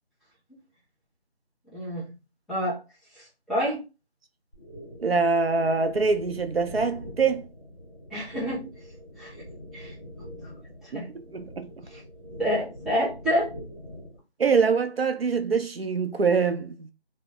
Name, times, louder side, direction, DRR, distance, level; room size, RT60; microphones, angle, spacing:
voice 1, 1.7-2.1 2.5-2.8 3.5-3.8 8.1-8.7 9.2-9.3 9.7-9.9 10.3-10.4 10.8-11.1 12.4-13.5, equal, ahead, 0.5 m, -27 dB
sound 1, 4.5-14.2, equal, 20° left, 0.9 m, -43 dB
voice 2, 5.0-7.5 10.9-11.0 11.3-11.7 14.4-16.9, right 5 dB, 65° right, 0.5 m, -24 dB
2.1 x 2.0 x 3.7 m
figure-of-eight pair, 170°, 32 cm